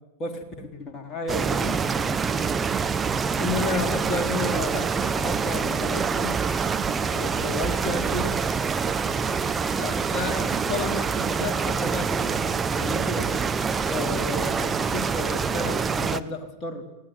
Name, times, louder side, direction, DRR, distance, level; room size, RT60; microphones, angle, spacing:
voice 1, 0.2-1.8 3.4-6.4 7.1-8.4 9.8-13.5 13.9-16.9, left 3 dB, 25° left, 3 dB, 3.9 m, -32 dB
sound 1, 1.3-16.2, right 5 dB, 15° right, 1.1 m, -26 dB
26.5 x 18.0 x 9.5 m, 0.93 s
figure-of-eight pair, 90°, 0 cm